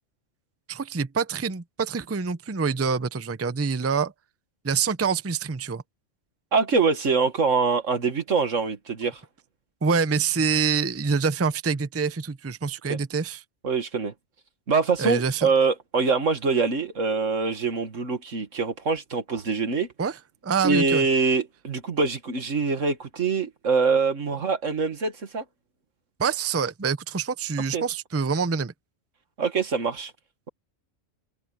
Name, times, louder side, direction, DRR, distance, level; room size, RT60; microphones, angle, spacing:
voice 1, 0.7-4.1 4.6-5.8 9.8-13.4 15.0-15.5 20.0-20.2 20.4-21.0 26.2-28.7, right 5 dB, 20° right, 0.5 m, -26 dB
voice 2, 6.5-9.2 12.9-13.0 13.6-14.1 14.7-19.9 20.6-25.4 27.7-27.8 29.4-30.1, right 4 dB, 90° right, 2.2 m, -24 dB
omnidirectional pair, 1.3 m